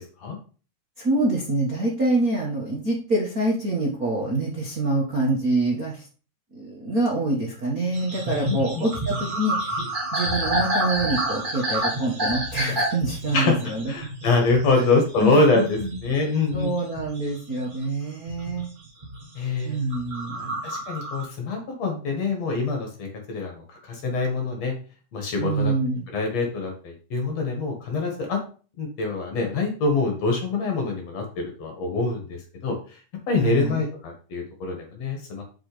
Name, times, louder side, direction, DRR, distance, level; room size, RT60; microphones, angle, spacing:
voice 1, 1.0-6.1 6.5-9.8 10.1-13.9 14.7-14.8 15.2-16.2 16.5-18.7 19.6-20.6 25.4-26.0 33.3-33.9, right 2 dB, 35° right, -4 dB, 1.5 m, -26 dB
sound 1, 7.9-17.8 18.3-19.3 19.8-21.2, right 1 dB, 20° right, 1.3 m, -29 dB
voice 2, 13.9-16.7 19.4-19.8 20.3-24.7 25.1-25.7 26.1-28.4 28.8-32.7 33.3-35.4, left 3 dB, 55° left, 2 dB, 2.8 m, -25 dB
6.2 x 6.0 x 5.1 m, 0.38 s
omnidirectional pair, 3.8 m